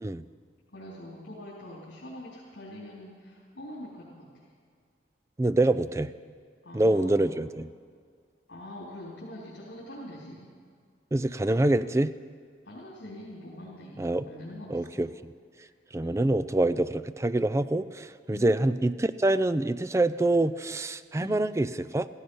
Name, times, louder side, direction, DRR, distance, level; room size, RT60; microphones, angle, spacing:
voice 1, 0.7-4.5 6.6-7.3 8.5-10.5 12.6-14.9 15.6-15.7 16.0-16.3 18.3-18.6 21.2-21.5, left 1 dB, 70° left, -7 dB, 3.7 m, -44 dB
voice 2, 5.4-6.1 6.7-7.7 11.1-12.1 14.0-14.2 14.7-15.3 15.9-22.1, right 2 dB, 15° right, 13 dB, 0.3 m, -26 dB
15.5 x 15.5 x 5.6 m, 2.1 s
head